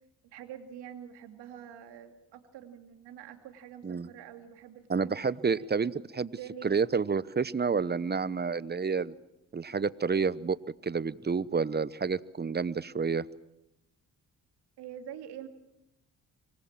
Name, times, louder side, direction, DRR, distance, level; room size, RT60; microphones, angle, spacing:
voice 1, 0.2-5.2 5.5-5.7 6.4-6.8 14.8-15.5, right 9 dB, 80° right, 6 dB, 2.6 m, -46 dB
voice 2, 4.9-6.3 6.6-9.1 9.5-10.6 10.8-13.2, right 5 dB, 25° right, 18 dB, 0.9 m, -29 dB
25.5 x 20.0 x 7.5 m, 0.91 s
supercardioid pair, 55°, 40 cm